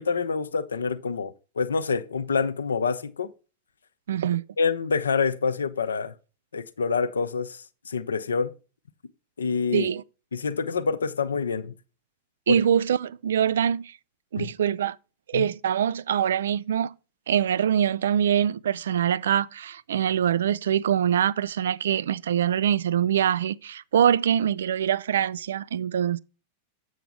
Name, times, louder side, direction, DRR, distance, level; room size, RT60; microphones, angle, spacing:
voice 1, 0.0-3.3 4.6-6.1 6.5-8.5 9.4-9.9 10.3-11.7 12.5-12.6 14.4-14.5 15.3-15.5, left 5 dB, 70° left, 0.6 m, -27 dB
voice 2, 4.1-4.4 9.7-10.0 12.5-14.0 14.3-15.0 15.3-16.9 17.3-26.2, right 9 dB, 65° right, 0.3 m, -24 dB
7.8 x 6.3 x 3.5 m
figure-of-eight pair, 90°, 0 cm